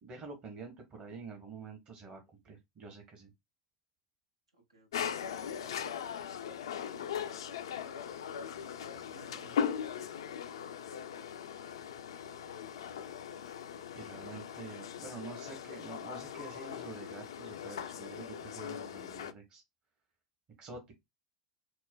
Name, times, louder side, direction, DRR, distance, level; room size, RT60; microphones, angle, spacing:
voice 1, 0.0-3.3 13.9-19.6 20.6-20.9, right 4 dB, 40° right, 1.0 m, -47 dB
voice 2, 4.5-5.9 8.8-9.6, right 5 dB, 85° right, 0.9 m, -61 dB
sound 1, 4.9-19.3, left 8 dB, 75° left, 0.4 m, -39 dB
4.4 x 2.1 x 2.2 m
figure-of-eight pair, 80°, 3 cm